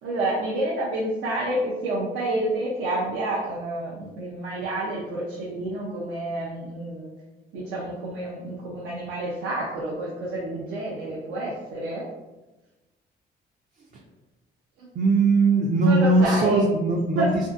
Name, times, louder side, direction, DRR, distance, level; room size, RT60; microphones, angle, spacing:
voice 1, 0.0-7.1 7.5-12.1 14.8-14.9 15.8-16.6 17.2-17.3, right 1 dB, 85° right, -5 dB, 0.6 m, -29 dB
voice 2, 15.0-17.3, right 3 dB, 40° right, -1 dB, 0.4 m, -20 dB
2.6 x 2.5 x 2.4 m, 1.1 s
cardioid pair, 90°, 20 cm